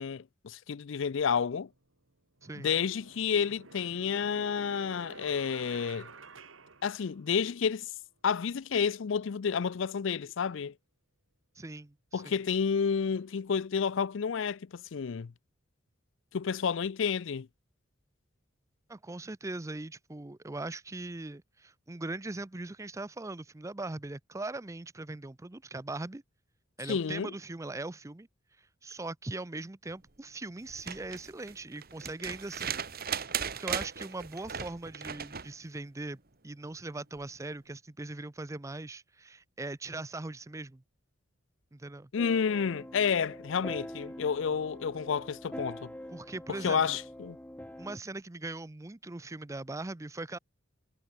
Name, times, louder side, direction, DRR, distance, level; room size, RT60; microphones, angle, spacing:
voice 1, 0.0-1.7 2.6-6.1 6.8-7.9 8.2-10.7 12.1-15.3 16.3-17.5 26.9-27.3 42.1-45.9 46.6-47.4, left 6 dB, 65° left, 0.4 m, -30 dB
sound 1, 1.7-1.8 2.4-7.6, right 3 dB, 75° right, 2.9 m, -51 dB
voice 2, 2.4-2.7 11.6-12.4 18.9-26.2 26.8-28.3 28.6-32.8 33.5-40.8 41.7-42.1 46.1-47.0 47.8-50.4, right 2 dB, 15° right, 0.5 m, -40 dB
sound 2, 30.7-35.5 37.2-37.3, right 7 dB, 50° right, 2.0 m, -37 dB
sound 3, 42.2-48.0, left 1 dB, 10° left, 1.0 m, -45 dB
head